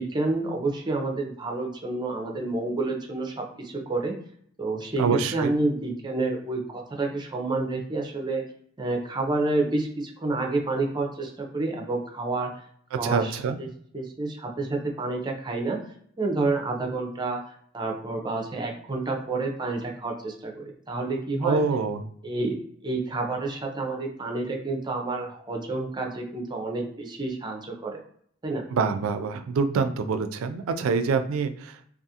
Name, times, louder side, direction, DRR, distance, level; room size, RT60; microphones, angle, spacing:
voice 1, 0.0-4.2 4.6-8.4 8.8-12.5 13.0-13.7 13.9-15.8 16.2-21.6 22.2-28.0 28.4-28.6, right 2 dB, 20° right, 1 dB, 0.5 m, -29 dB
voice 2, 5.0-5.5 12.9-13.6 21.4-22.0 28.7-31.9, right 5 dB, 85° right, 9 dB, 0.3 m, -26 dB
2.4 x 2.4 x 2.7 m, 0.65 s
head